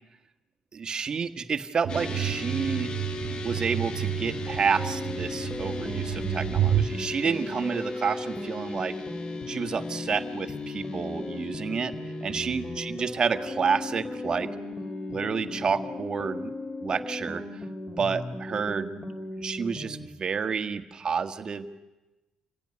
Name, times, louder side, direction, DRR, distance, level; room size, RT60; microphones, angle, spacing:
voice 1, 0.7-3.0 3.4-9.0 9.5-11.9 12.2-14.5 15.1-16.5 16.8-17.4 17.9-19.0 19.4-21.7, right 6 dB, 40° right, 9 dB, 1.5 m, -29 dB
sound 1, 1.8-6.9, right 11 dB, 60° right, 0.9 m, -30 dB
sound 2, 1.9-19.3, left 4 dB, 40° left, 1.7 m, -38 dB
sound 3, 4.5-20.1, left 1 dB, 10° left, 3.4 m, -38 dB
26.0 x 17.0 x 9.8 m, 1.1 s
cardioid pair, 110°, 2 cm